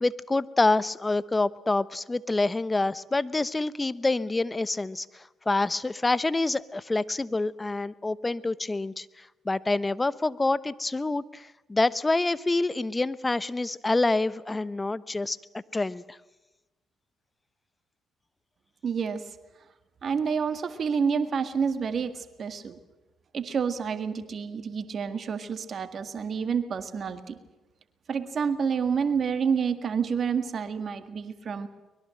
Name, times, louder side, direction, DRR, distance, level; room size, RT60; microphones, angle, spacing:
voice 1, 0.0-16.2, left 2 dB, 20° left, 17 dB, 1.0 m, -27 dB
voice 2, 18.8-19.2 20.0-22.8 23.3-27.4 28.1-31.7, right 6 dB, 55° right, 10 dB, 1.8 m, -28 dB
23.5 x 21.5 x 7.8 m, 1.1 s
hypercardioid pair, 55°, 0 cm